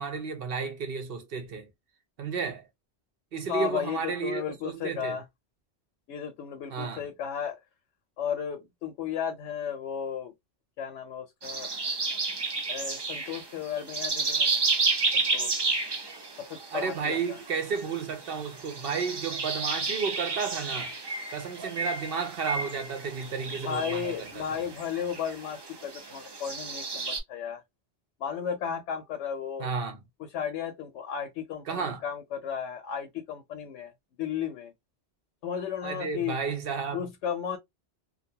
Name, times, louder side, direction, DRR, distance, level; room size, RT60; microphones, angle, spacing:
voice 1, 0.0-1.7 2.2-2.7 3.3-5.2 6.7-7.0 16.7-20.9 21.3-24.6 29.6-30.0 31.7-32.0 35.8-37.1, right 5 dB, 60° right, 0.8 m, -32 dB
voice 2, 3.5-5.2 6.1-7.6 8.2-10.3 10.8-11.7 12.7-14.6 15.1-15.5 16.4-17.4 23.6-27.6 28.2-29.7 30.3-33.9 34.2-34.7 35.4-36.4 36.9-37.6, left 8 dB, 80° left, 0.9 m, -34 dB
sound 1, 11.4-27.2, right 3 dB, 40° right, 0.3 m, -32 dB
2.5 x 2.2 x 2.6 m
omnidirectional pair, 1.2 m